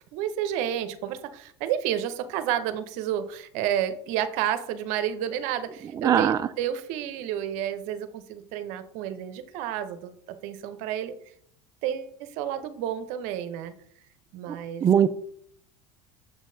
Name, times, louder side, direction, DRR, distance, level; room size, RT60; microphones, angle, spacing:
voice 1, 0.1-10.1 10.4-11.1 11.8-13.7 14.3-14.9, right 10 dB, 65° right, 10 dB, 0.7 m, -30 dB
voice 2, 6.0-6.4 14.8-15.1, right 9 dB, 25° right, 10 dB, 0.3 m, -20 dB
7.0 x 6.3 x 2.7 m, 0.65 s
hypercardioid pair, 90°, 13 cm